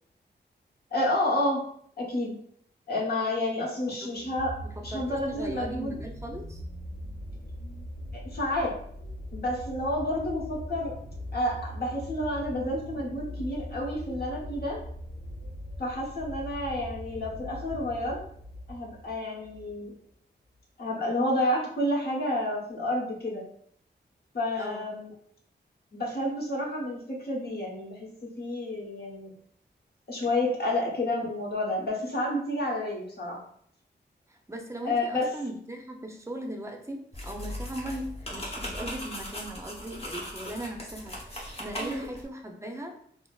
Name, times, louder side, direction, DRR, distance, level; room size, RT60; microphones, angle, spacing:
voice 1, 0.9-1.6 2.0-2.4 2.9-4.5 4.8-6.0 8.2-8.7 9.3-10.9 11.3-14.8 15.8-18.2 18.7-19.9 20.8-23.4 24.3-25.1 25.9-29.3 30.1-33.4 34.8-35.3 41.8-42.1, left 1 dB, 60° left, -3 dB, 1.1 m, -30 dB
voice 2, 4.0-4.3 4.6-6.6 24.6-25.0 34.5-42.9, right 1 dB, 15° right, 2 dB, 0.6 m, -39 dB
sound 1, 4.2-19.7 20.6-20.7, left 1 dB, 85° left, 0.6 m, -41 dB
sound 2, 37.1-42.2, left 1 dB, 30° left, 1.0 m, -38 dB
4.1 x 2.0 x 2.4 m, 0.64 s
cardioid pair, 55°, 19 cm